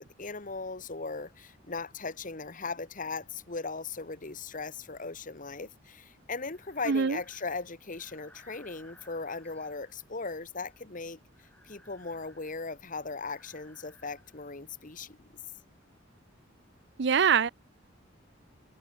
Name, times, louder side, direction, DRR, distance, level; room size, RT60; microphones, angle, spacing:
voice 1, 0.0-11.2 11.6-15.3, left 4 dB, 45° left, 1.7 m, -38 dB
Breathing, 5.9-14.9, left 1 dB, 10° left, 7.0 m, -60 dB
voice 2, 6.9-7.2 17.0-17.5, right 6 dB, 65° right, 0.6 m, -23 dB
head